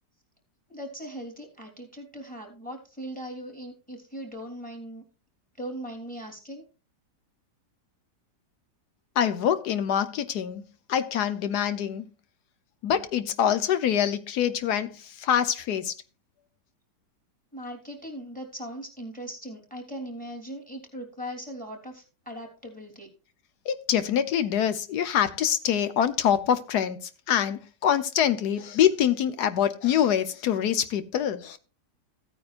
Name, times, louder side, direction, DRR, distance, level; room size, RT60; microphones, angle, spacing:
voice 1, 0.7-5.0 5.6-6.6 17.5-23.1, equal, 5° left, 3.2 m, -39 dB
voice 2, 9.2-10.6 10.9-12.1 12.8-15.9 23.6-31.6, left 9 dB, 70° left, 1.4 m, -25 dB
15.5 x 9.2 x 2.5 m
omnidirectional pair, 1.8 m